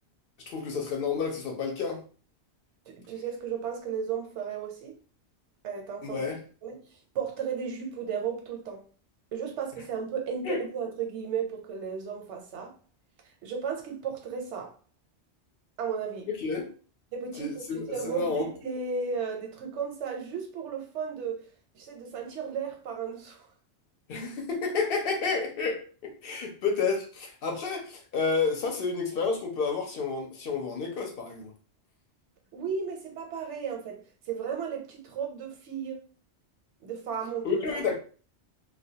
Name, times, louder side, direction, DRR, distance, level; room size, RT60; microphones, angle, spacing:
voice 1, 0.5-2.0 6.0-6.4 10.4-10.6 16.4-16.7 17.4-18.5 24.1-31.5 37.4-37.9, left 4 dB, 65° left, 0.7 m, -30 dB
voice 2, 2.9-5.0 5.6-6.2 6.6-6.8 7.1-8.8 9.3-12.7 13.4-14.7 15.8-16.3 17.1-21.5 21.7-23.5 32.5-34.0 34.3-36.0 36.8-37.6, right 6 dB, 90° right, 1.0 m, -34 dB
2.3 x 2.2 x 2.7 m
omnidirectional pair, 1.2 m